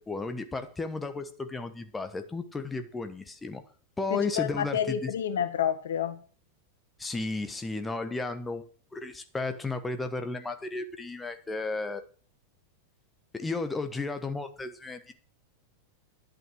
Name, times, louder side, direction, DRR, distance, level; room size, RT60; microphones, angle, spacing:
voice 1, 0.0-3.6 4.0-5.1 7.0-8.6 8.9-12.0 13.3-15.1, left 3 dB, 10° left, 8 dB, 1.2 m, -34 dB
voice 2, 4.1-6.2, left 9 dB, 60° left, 11 dB, 1.6 m, -29 dB
11.0 x 9.2 x 6.3 m, 0.40 s
figure-of-eight pair, 90°, 0 cm